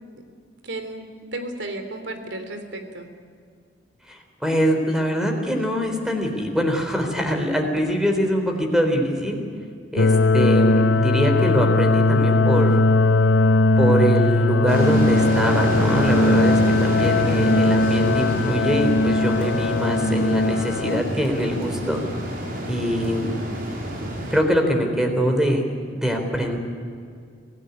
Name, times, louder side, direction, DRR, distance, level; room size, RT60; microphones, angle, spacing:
voice 1, 0.6-1.0 1.3-3.1, right 2 dB, 80° right, 7 dB, 3.5 m, -33 dB
voice 2, 4.1-9.4 9.9-12.8 13.8-22.0 22.7-23.3 24.3-25.6 25.9-26.6, equal, 5° right, 4 dB, 3.9 m, -23 dB
sound 1, 10.0-21.0, left 2 dB, 80° left, 0.8 m, -19 dB
sound 2, 14.7-24.4, equal, 55° right, 5.3 m, -29 dB
25.0 x 17.0 x 9.7 m, 2.3 s
head